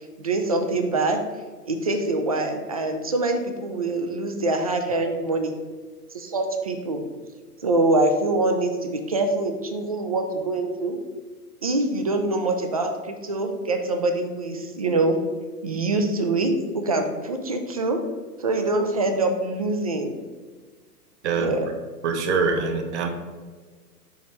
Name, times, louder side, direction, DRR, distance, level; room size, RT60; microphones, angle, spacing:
voice 1, 0.2-1.2 1.7-5.5 6.1-7.0 7.6-11.0 11.6-15.2 15.6-18.0 18.4-20.1 21.4-21.7, right 2 dB, 25° right, 5 dB, 0.3 m, -24 dB
voice 2, 22.0-23.1, right 4 dB, 45° right, 5 dB, 1.0 m, -24 dB
7.0 x 3.1 x 5.1 m, 1.5 s
figure-of-eight pair, 110°, 47 cm